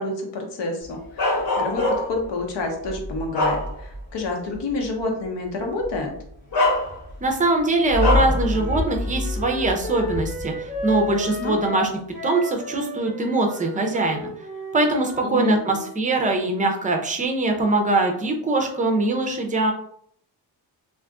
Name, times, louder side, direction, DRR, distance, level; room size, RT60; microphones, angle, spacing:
voice 1, 0.0-6.1 11.4-11.5 15.2-15.6, left 2 dB, 75° left, 2 dB, 0.9 m, -28 dB
Bark, 1.2-2.3 2.8-4.1 4.5-4.7 5.8-6.0 6.5-7.3 8.0-8.4, left 2 dB, 55° left, 1.0 m, -24 dB
voice 2, 7.2-11.9 12.2-14.3 14.7-19.7, right 2 dB, 20° right, 3 dB, 0.5 m, -22 dB
sound 1, 7.9-11.4, left 2 dB, 35° left, 0.8 m, -26 dB
Wind instrument woodwind instrument, 8.5-15.9, left 1 dB, ahead, 1.0 m, -34 dB
2.5 x 2.4 x 3.5 m, 0.64 s
wide cardioid pair, 125°, 42 cm